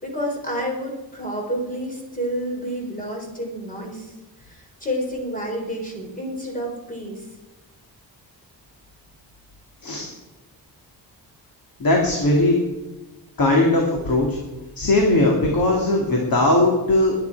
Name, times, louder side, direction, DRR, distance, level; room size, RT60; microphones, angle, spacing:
voice 1, 0.0-4.1 4.4-7.3, equal, 20° left, 0 dB, 3.9 m, -29 dB
voice 2, 11.8-12.6 13.4-14.4 14.8-17.1, left 2 dB, 55° left, -1 dB, 2.7 m, -19 dB
21.0 x 9.6 x 4.8 m, 1.1 s
wide cardioid pair, 140°, 42 cm